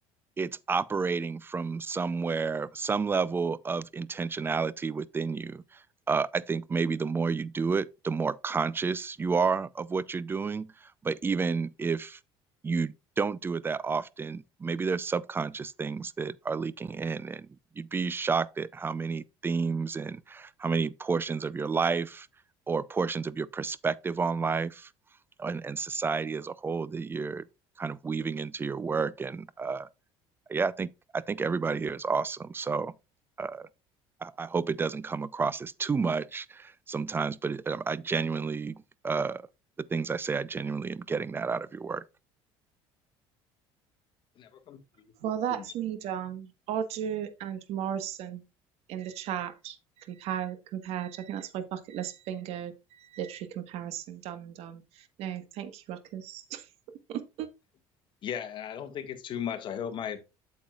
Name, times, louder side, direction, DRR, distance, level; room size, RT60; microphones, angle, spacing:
voice 1, 0.4-5.8 6.1-12.2 12.6-17.5 17.8-22.3 22.7-24.9 25.4-27.4 27.8-29.9 30.5-32.9 33.4-33.7 34.2-39.5 39.8-42.0, right 5 dB, 20° right, 0.5 m, -30 dB
voice 2, 44.4-45.6 58.2-60.2, left 8 dB, 45° left, 1.7 m, -37 dB
voice 3, 45.2-48.4 48.9-56.7 57.1-57.5, right 10 dB, 65° right, 1.4 m, -35 dB
8.6 x 7.4 x 2.4 m
cardioid pair, 110°, 11 cm